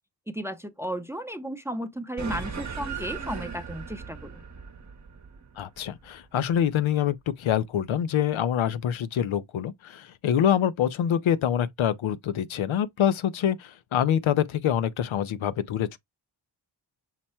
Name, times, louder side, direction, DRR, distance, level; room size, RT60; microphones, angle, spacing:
voice 1, 0.3-4.4, right 1 dB, 5° right, 0.7 m, -34 dB
sound 1, 2.2-6.9, right 5 dB, 35° right, 0.9 m, -38 dB
voice 2, 5.6-16.0, left 9 dB, 80° left, 0.6 m, -25 dB
5.8 x 2.1 x 4.3 m
cardioid pair, 50°, 48 cm